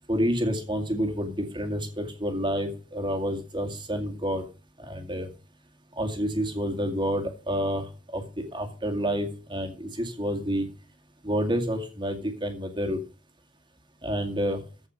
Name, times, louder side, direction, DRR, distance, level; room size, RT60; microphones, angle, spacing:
voice 1, 0.1-4.4 4.8-5.3 6.0-10.7 11.2-13.0 14.0-14.6, equal, 25° right, 4 dB, 2.2 m, -29 dB
14.5 x 5.3 x 6.4 m, 0.35 s
head